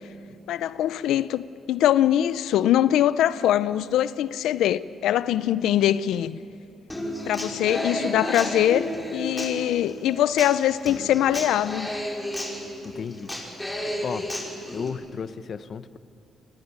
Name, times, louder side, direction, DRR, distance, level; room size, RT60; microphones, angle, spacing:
voice 1, 0.5-1.4 1.7-6.4 7.3-11.9, left 11 dB, 85° left, 15 dB, 0.6 m, -22 dB
Human voice / Acoustic guitar, 6.9-14.9, left 1 dB, 10° left, 5.9 m, -32 dB
voice 2, 12.8-13.3 14.0-14.3 14.7-16.0, left 6 dB, 50° left, 13 dB, 1.1 m, -34 dB
28.5 x 21.5 x 9.7 m, 2.7 s
cardioid pair, 90°, 0 cm